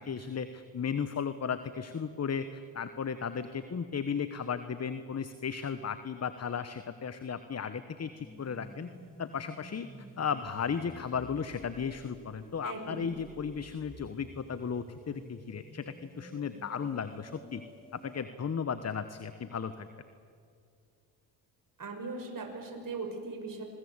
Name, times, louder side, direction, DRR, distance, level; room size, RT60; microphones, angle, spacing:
voice 1, 0.0-8.9 9.2-9.9 10.2-17.6 17.9-19.9, left 6 dB, 30° left, 12 dB, 1.2 m, -35 dB
sound 1, 8.2-18.2, equal, ahead, 7.4 m, -52 dB
voice 2, 12.6-13.1 21.8-23.6, right 3 dB, 40° right, 3 dB, 6.0 m, -39 dB
27.0 x 22.0 x 8.3 m, 2.3 s
supercardioid pair, 65°, 48 cm